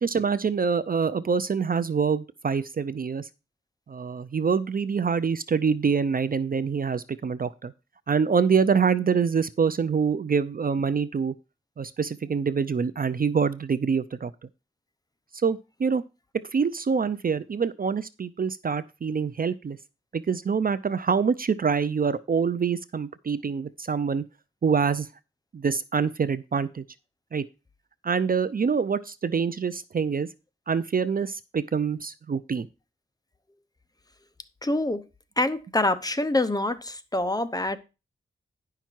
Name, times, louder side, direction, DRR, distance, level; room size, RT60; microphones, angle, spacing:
voice 1, 0.0-3.3 3.9-7.7 8.1-11.3 11.8-14.3 15.4-16.0 16.5-19.8 20.1-24.2 24.6-25.1 25.5-26.8 27.3-27.5 28.0-30.3 30.7-32.7, right 6 dB, 45° right, 0.5 m, -25 dB
voice 2, 34.6-35.0 35.4-37.8, left 2 dB, 15° left, 0.8 m, -25 dB
10.0 x 5.9 x 4.5 m
wide cardioid pair, 85°, 21 cm